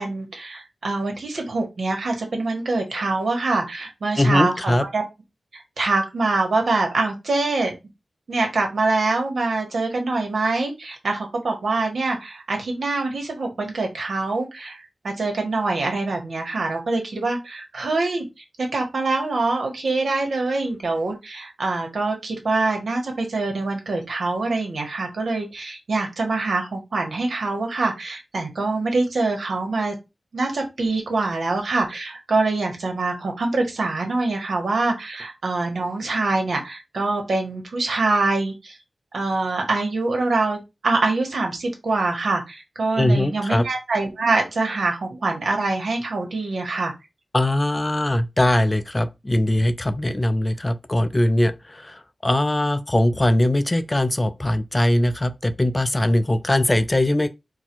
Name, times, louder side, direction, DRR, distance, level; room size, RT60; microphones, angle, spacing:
voice 1, 0.0-5.0 5.5-7.7 8.3-29.9 30.3-38.8 39.1-46.9, right 3 dB, 80° right, 1.3 m, -24 dB
voice 2, 4.2-4.8 43.0-43.7 47.3-57.3, left 1 dB, 25° left, 0.4 m, -21 dB
4.0 x 2.3 x 4.4 m
wide cardioid pair, 75°, 0 cm